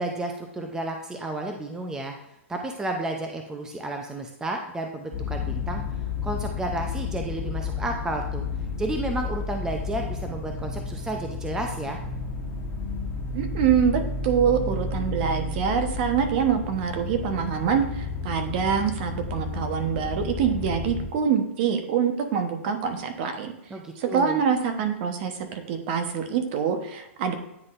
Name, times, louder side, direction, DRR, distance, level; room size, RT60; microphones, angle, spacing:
voice 1, 0.0-2.2 2.5-5.8 6.2-8.4 8.8-12.0 23.7-24.4, right 2 dB, 10° right, 3 dB, 0.6 m, -32 dB
sound 1, 5.1-21.1, left 4 dB, 25° left, 1.6 m, -32 dB
voice 2, 13.3-23.5 24.0-27.3, right 7 dB, 50° right, 7 dB, 1.0 m, -25 dB
9.6 x 4.0 x 2.5 m, 0.86 s
hypercardioid pair, 135°, 7 cm